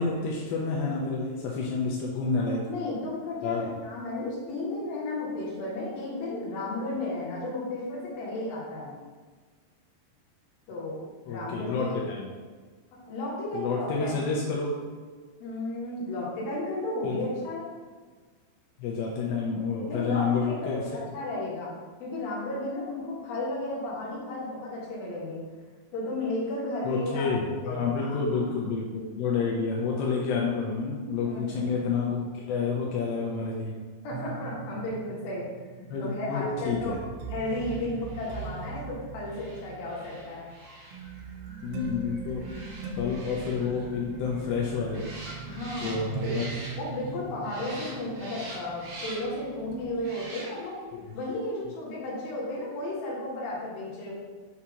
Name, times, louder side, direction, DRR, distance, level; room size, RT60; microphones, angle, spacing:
voice 1, 0.0-2.6 3.4-3.7 11.3-12.3 13.5-14.7 17.0-17.3 18.8-20.8 26.8-33.7 35.9-37.0 41.6-42.5 43.0-45.1 45.8-46.5 50.9-51.0, left 4 dB, 85° left, -3 dB, 2.8 m, -29 dB
voice 2, 2.4-8.9 10.7-12.0 12.9-14.2 15.4-17.6 19.9-21.7 22.0-25.4 25.9-27.3 27.6-28.6 31.2-31.7 34.0-35.5 35.8-37.0 37.3-40.5 45.5-46.4 46.7-50.8 51.1-54.1, left 2 dB, 60° left, -6 dB, 2.9 m, -34 dB
sound 1, 34.1-49.3 49.7-49.9, right 4 dB, 90° right, 2.9 m, -41 dB
sound 2, 37.4-47.1 47.4-49.4 50.0-50.8 51.2-51.3, right 1 dB, 60° right, 1.6 m, -45 dB
sound 3, 42.2-50.1, right 5 dB, 75° right, 2.8 m, -49 dB
7.1 x 2.9 x 4.8 m, 1.5 s
omnidirectional pair, 5.2 m